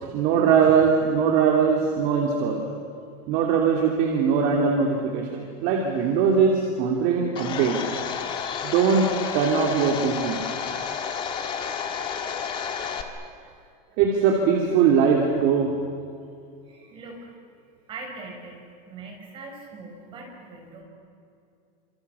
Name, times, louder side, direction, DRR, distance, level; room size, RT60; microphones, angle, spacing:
voice 1, 0.0-2.6 3.3-7.8 8.6-9.1 9.3-10.4 14.0-15.7, right 6 dB, 45° right, 0 dB, 3.0 m, -21 dB
Domestic sounds home sounds, 7.3-13.0, left 7 dB, 25° left, 1.7 m, -31 dB
voice 2, 16.6-17.3 17.9-18.6 18.8-20.8, right 3 dB, 25° right, 0 dB, 6.6 m, -41 dB
28.5 x 27.5 x 7.0 m, 2.4 s
supercardioid pair, 175°, 21 cm